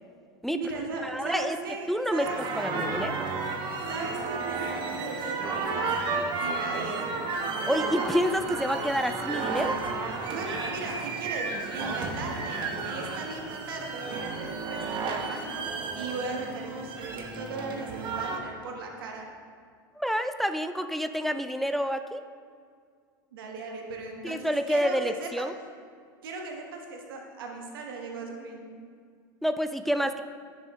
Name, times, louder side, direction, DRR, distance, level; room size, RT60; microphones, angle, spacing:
voice 1, 0.5-2.7 3.9-7.1 10.3-19.3 23.3-25.5 26.2-28.6, right 3 dB, 80° right, 2 dB, 1.3 m, -37 dB
voice 2, 1.0-1.6 1.9-3.2 7.7-9.8 20.0-22.2 24.2-25.5 29.4-30.2, equal, ahead, 9 dB, 0.3 m, -28 dB
sound 1, 2.2-18.4, right 4 dB, 45° right, 1.0 m, -32 dB
10.0 x 6.7 x 3.1 m, 2.1 s
hypercardioid pair, 95°, 12 cm